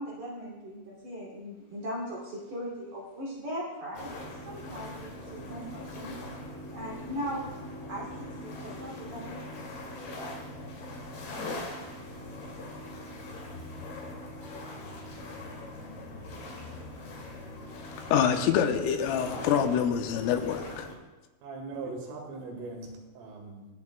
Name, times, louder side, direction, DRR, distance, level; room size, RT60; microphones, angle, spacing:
voice 1, 0.0-6.2 6.7-7.6 7.9-9.4, equal, 45° right, -4 dB, 3.4 m, -39 dB
sound 1, 3.9-20.9, left 1 dB, 55° left, 3.8 m, -41 dB
voice 2, 18.1-20.9, left 8 dB, 85° left, 5 dB, 3.3 m, -26 dB
voice 3, 21.4-23.7, right 3 dB, 80° right, 1 dB, 4.2 m, -40 dB
24.5 x 8.3 x 2.2 m, 1.2 s
omnidirectional pair, 5.9 m